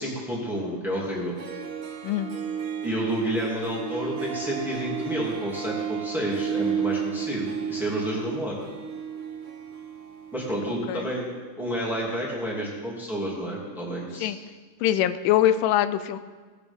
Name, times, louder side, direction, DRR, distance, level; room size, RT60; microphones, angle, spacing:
voice 1, 0.0-1.4 2.8-8.6 10.3-11.2 11.6-14.3, right 1 dB, ahead, -4 dB, 1.9 m, -30 dB
Harp, 1.1-1.2 1.4-10.9, right 8 dB, 70° right, 1.3 m, -33 dB
voice 2, 2.0-2.3 10.9-11.1 14.2-14.4 14.8-16.2, left 12 dB, 90° left, 12 dB, 2.2 m, -23 dB
18.5 x 8.4 x 3.6 m, 1.4 s
omnidirectional pair, 3.7 m